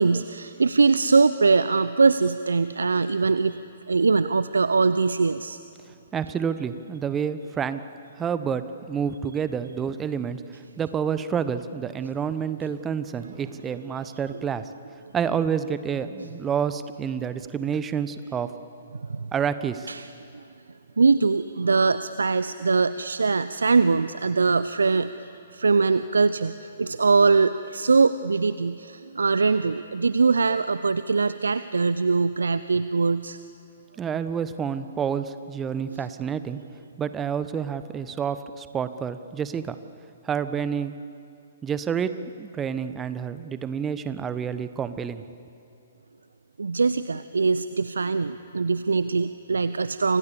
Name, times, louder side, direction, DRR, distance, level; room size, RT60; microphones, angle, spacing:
voice 1, 0.0-3.6 3.9-5.6 16.2-16.3 19.1-19.3 19.9-20.1 21.0-25.1 25.5-26.5 26.8-33.4 35.9-36.1 46.6-50.2, right 4 dB, 70° right, 14 dB, 0.7 m, -22 dB
voice 2, 6.1-7.8 8.2-10.4 10.8-14.6 15.1-18.5 19.3-19.9 34.0-36.6 37.0-39.8 40.2-40.9 41.6-42.1 42.4-45.2, right 7 dB, 15° right, 12 dB, 1.2 m, -28 dB
29.5 x 25.5 x 7.2 m, 2.7 s
figure-of-eight pair, 120°, 0 cm